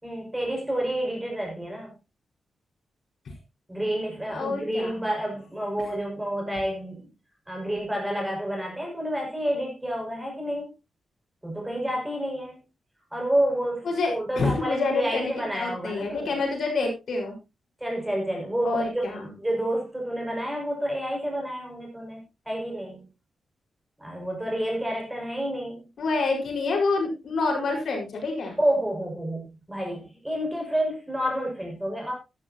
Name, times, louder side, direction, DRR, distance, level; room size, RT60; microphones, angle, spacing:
voice 1, 0.0-1.9 3.7-7.1 7.5-10.7 11.4-12.6 13.1-16.3 17.8-23.0 24.0-25.8 28.6-32.1, right 1 dB, 10° right, 0 dB, 6.3 m, -29 dB
voice 2, 4.3-5.0 13.9-17.4 18.6-19.3 26.0-28.6, left 3 dB, 65° left, 1 dB, 5.2 m, -27 dB
13.5 x 12.5 x 2.9 m, 0.27 s
wide cardioid pair, 125°, 0 cm